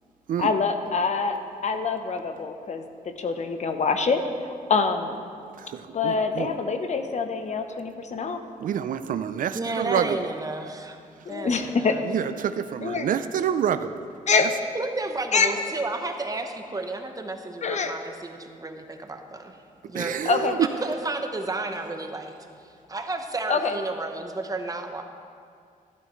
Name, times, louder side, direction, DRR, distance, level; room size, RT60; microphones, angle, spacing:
voice 1, 0.4-4.2 4.7-5.0 5.9-8.4 11.3-11.9 12.8-13.1 14.3-14.5 15.3-15.5 17.6-18.0 20.3-20.6 23.5-23.8, left 4 dB, 55° left, 7 dB, 0.8 m, -25 dB
voice 2, 5.7-6.5 8.6-10.2 12.0-14.0 14.4-14.5 19.9-20.7, right 9 dB, 70° right, 11 dB, 0.4 m, -27 dB
voice 3, 9.5-11.0 11.3-12.0 14.7-19.6 19.8-20.3 20.8-22.3 22.6-25.0, right 2 dB, 25° right, 5 dB, 0.9 m, -32 dB
12.5 x 11.5 x 3.1 m, 2.3 s
cardioid pair, 90°, 14 cm